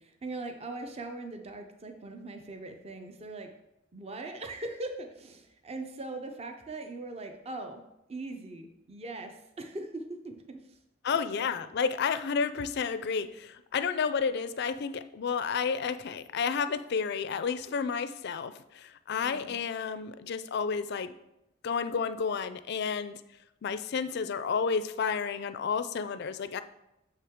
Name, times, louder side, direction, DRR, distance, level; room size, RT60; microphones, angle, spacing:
voice 1, 0.0-3.5 3.9-7.8 8.1-10.8 11.1-11.2 11.5-11.6 19.2-19.6, right 2 dB, 30° right, 5 dB, 0.5 m, -40 dB
voice 2, 11.0-21.1 21.6-23.2 23.6-26.6, left 6 dB, 55° left, 12 dB, 0.4 m, -31 dB
6.7 x 5.8 x 3.6 m, 0.88 s
head